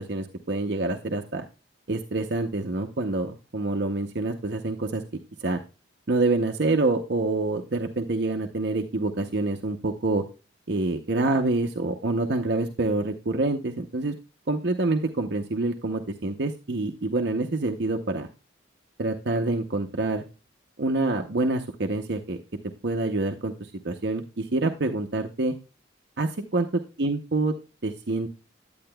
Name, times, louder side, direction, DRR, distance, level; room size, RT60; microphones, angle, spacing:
voice 1, 0.0-1.4 1.9-5.0 5.4-5.6 6.1-10.2 10.7-14.1 14.5-18.3 19.0-20.2 20.8-22.4 22.8-25.5 26.2-26.7 27.0-27.5 27.8-28.3, right 2 dB, 60° right, 4 dB, 0.7 m, -26 dB
10.5 x 8.6 x 2.2 m, 0.31 s
head